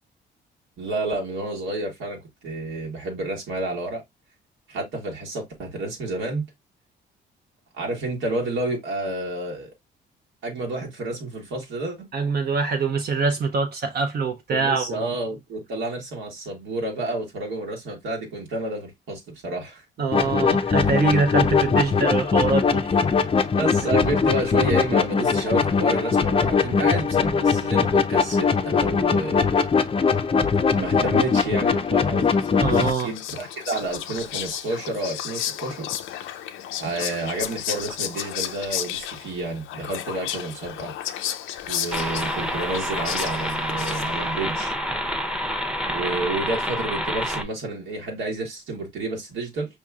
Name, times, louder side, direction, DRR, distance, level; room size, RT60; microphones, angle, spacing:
voice 1, 0.8-4.0 4.7-6.4 7.8-9.7 10.4-12.1 14.5-19.8 20.7-20.8 23.6-29.4 30.7-32.3 33.0-35.9 36.8-40.9 41.7-44.7 45.8-49.7, right 2 dB, 85° right, 1.5 m, -30 dB
voice 2, 12.1-15.1 20.0-23.0 32.6-33.1, right 4 dB, 55° right, 0.7 m, -24 dB
sound 1, 20.1-32.9, left 5 dB, 30° left, 0.5 m, -21 dB
Whispering, 32.4-44.4, left 11 dB, 90° left, 0.5 m, -33 dB
sound 2, 41.9-47.4, equal, 5° right, 0.7 m, -28 dB
5.1 x 2.9 x 2.3 m
cardioid pair, 90°, 20 cm